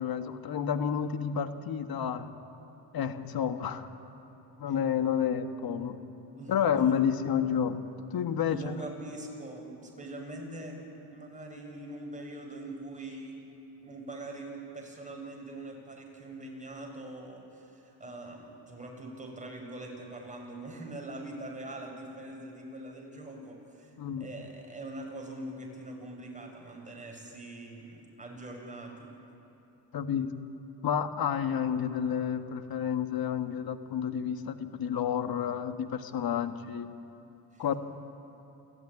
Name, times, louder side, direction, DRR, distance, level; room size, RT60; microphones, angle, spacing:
voice 1, 0.0-2.3 2.9-3.9 4.6-6.0 6.5-8.6 24.0-24.3 29.9-30.3 30.8-36.9 37.6-37.7, left 8 dB, 55° left, 8 dB, 1.8 m, -30 dB
voice 2, 8.5-10.8 11.1-13.4 13.8-29.1 37.5-37.7, right 2 dB, 15° right, 0 dB, 6.9 m, -43 dB
29.0 x 15.0 x 9.8 m, 2.9 s
cardioid pair, 95°, 44 cm